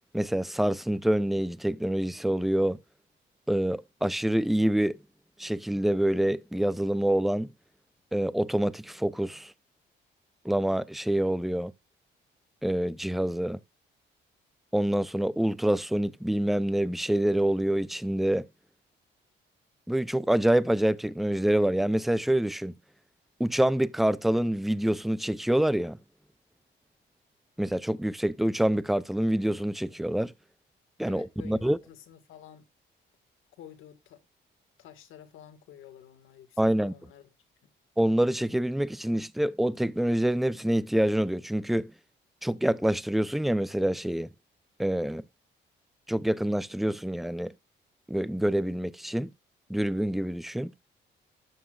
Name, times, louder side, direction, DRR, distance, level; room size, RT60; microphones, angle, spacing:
voice 1, 0.1-2.8 3.5-5.0 5.4-7.5 8.1-9.5 10.4-11.7 12.6-13.6 14.7-18.5 19.9-22.7 23.4-26.0 27.6-30.3 31.0-31.8 36.6-36.9 38.0-41.9 42.4-44.3 44.8-45.2 46.1-47.5 48.1-49.3 49.7-50.7, right 1 dB, ahead, 0.5 m, -26 dB
voice 2, 31.0-32.7 33.6-34.2 34.8-37.3, left 10 dB, 85° left, 1.9 m, -50 dB
13.0 x 9.5 x 2.4 m
cardioid pair, 90°, 20 cm